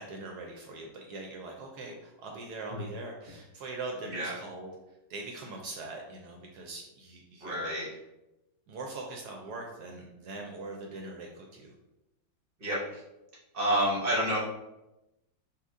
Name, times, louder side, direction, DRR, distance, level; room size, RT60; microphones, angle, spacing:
voice 1, 0.0-4.7 5.1-7.7 8.7-11.7, right 2 dB, 70° right, 1 dB, 1.0 m, -42 dB
voice 2, 7.4-7.9 12.6-13.0 13.5-14.4, right 1 dB, 45° right, -4 dB, 0.7 m, -29 dB
5.6 x 2.4 x 2.6 m, 0.94 s
omnidirectional pair, 2.0 m